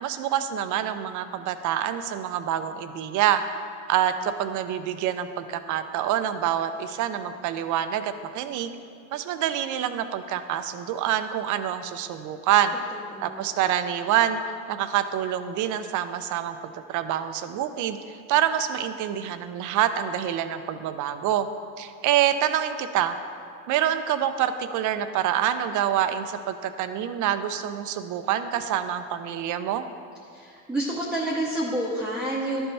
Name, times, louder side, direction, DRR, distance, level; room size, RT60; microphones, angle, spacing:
voice 1, 0.0-3.4 3.9-8.7 9.1-12.8 13.2-14.4 14.7-18.0 18.3-21.5 21.8-23.1 23.7-29.8, right 10 dB, 50° right, 10 dB, 0.5 m, -26 dB
voice 2, 12.9-13.4 30.3-32.7, right 1 dB, ahead, -5 dB, 0.8 m, -29 dB
11.5 x 4.3 x 3.3 m, 2.4 s
supercardioid pair, 90°, 39 cm